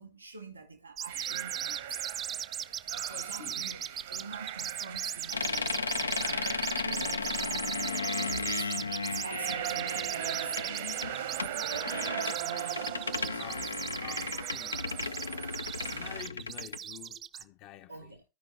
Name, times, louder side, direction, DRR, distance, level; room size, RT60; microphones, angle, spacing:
voice 1, 0.0-2.0 2.9-13.7 17.9-18.2, right 3 dB, 80° right, 1.8 m, -46 dB
sound 1, 1.0-17.4, right 9 dB, 25° right, 0.5 m, -37 dB
sound 2, 1.1-16.2, right 11 dB, 60° right, 1.0 m, -40 dB
sound 3, 5.3-16.8, left 4 dB, 75° left, 0.5 m, -35 dB
voice 2, 13.1-13.6 13.9-14.9 15.9-18.1, left 13 dB, 40° left, 0.7 m, -49 dB
14.0 x 5.3 x 3.3 m
figure-of-eight pair, 90°, 0 cm